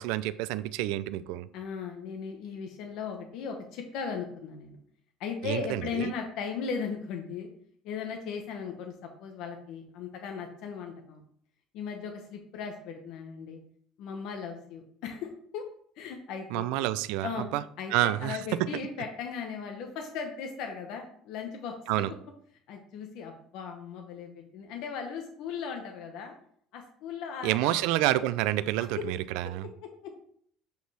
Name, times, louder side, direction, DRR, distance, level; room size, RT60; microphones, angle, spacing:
voice 1, 0.0-1.5 5.4-6.1 16.5-17.6 17.9-18.4 21.9-22.1 27.4-29.7, right 15 dB, 85° right, 16 dB, 0.4 m, -28 dB
voice 2, 1.5-4.8 5.2-7.5 7.8-8.9 9.2-11.2 11.7-13.6 14.0-15.6 16.0-16.7 17.2-17.5 17.8-22.0 22.7-26.3 26.7-27.8 29.0-29.1 29.8-30.1, left 6 dB, 65° left, 3 dB, 0.9 m, -37 dB
7.7 x 5.3 x 3.3 m, 0.63 s
cardioid pair, 160°, 0 cm